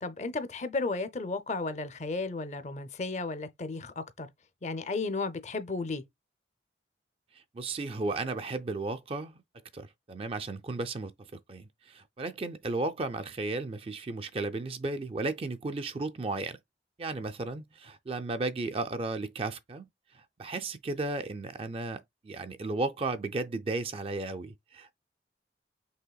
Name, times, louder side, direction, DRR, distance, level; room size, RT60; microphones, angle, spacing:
voice 1, 0.0-4.3 4.6-6.0, left 3 dB, 40° left, 0.5 m, -34 dB
voice 2, 7.5-9.4 9.7-16.6 17.0-19.9 20.1-25.0, right 3 dB, 30° right, 0.4 m, -34 dB
5.5 x 3.4 x 2.3 m
head